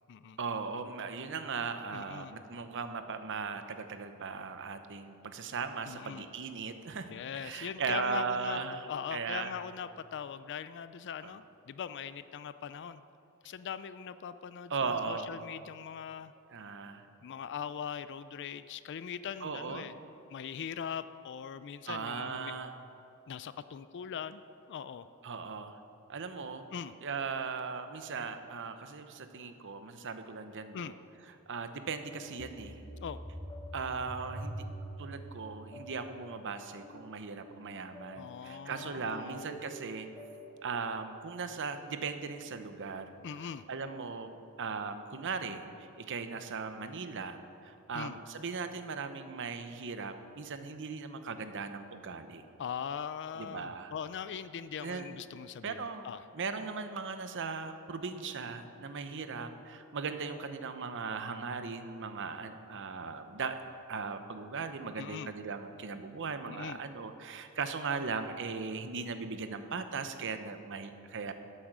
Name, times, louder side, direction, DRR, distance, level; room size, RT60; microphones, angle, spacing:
voice 1, 0.4-9.5 11.2-11.3 14.7-15.3 16.5-17.1 19.4-19.9 21.9-22.7 25.2-25.8 26.1-26.7 27.0-31.0 31.5-32.8 33.7-34.6 35.0-40.1 40.6-43.2 43.7-52.4 53.4-53.9 54.8-55.1 55.6-56.1 56.3-63.6 63.9-71.3, right 5 dB, 60° right, 9 dB, 0.8 m, -38 dB
voice 2, 1.9-2.3 5.9-6.3 7.1-8.6 8.9-13.0 13.4-16.3 17.2-19.9 20.3-22.5 23.3-24.4 24.7-25.1 26.7-26.9 30.7-30.9 33.0-33.2 38.2-39.6 43.2-43.6 47.9-48.2 52.6-56.2 65.0-65.3 66.5-66.8, left 7 dB, 55° left, 13 dB, 0.4 m, -41 dB
sound 1, 32.0-40.5, equal, 20° left, 3.4 m, -46 dB
12.5 x 8.6 x 6.1 m, 2.8 s
head